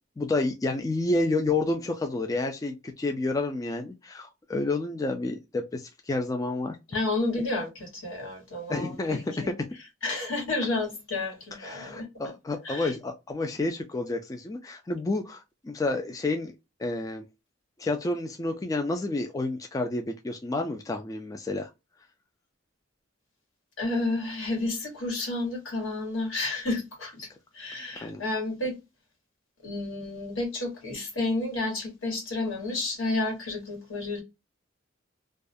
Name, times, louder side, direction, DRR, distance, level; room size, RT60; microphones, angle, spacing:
voice 1, 0.2-6.8 8.7-9.5 11.6-16.5 16.8-17.2 17.8-21.7 27.9-28.2, left 2 dB, 20° left, 0.3 m, -30 dB
voice 2, 6.9-9.5 10.0-12.0 12.6-12.9 23.8-27.3 27.5-28.8 29.6-34.2, left 2 dB, 85° left, 1.3 m, -31 dB
2.3 x 2.1 x 2.5 m
head